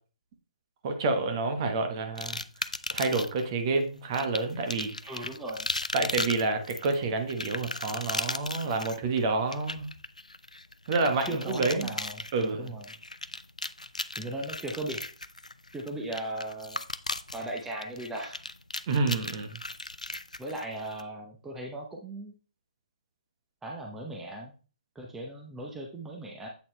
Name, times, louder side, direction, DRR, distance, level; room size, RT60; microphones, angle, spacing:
voice 1, 0.8-2.4 2.9-5.1 5.9-9.9 10.9-11.9 12.3-12.7 18.9-19.6, right 3 dB, 35° right, 5 dB, 1.2 m, -28 dB
sound 1, 2.2-3.4 4.1-21.0, left 2 dB, 85° left, 0.4 m, -37 dB
voice 2, 5.1-5.7 11.3-12.9 14.2-15.1 15.7-16.8 17.3-18.4 20.4-22.3 23.6-24.5 24.9-26.5, right 1 dB, 5° right, -1 dB, 0.8 m, -37 dB
8.1 x 4.2 x 3.2 m, 0.36 s
figure-of-eight pair, 130°, 4 cm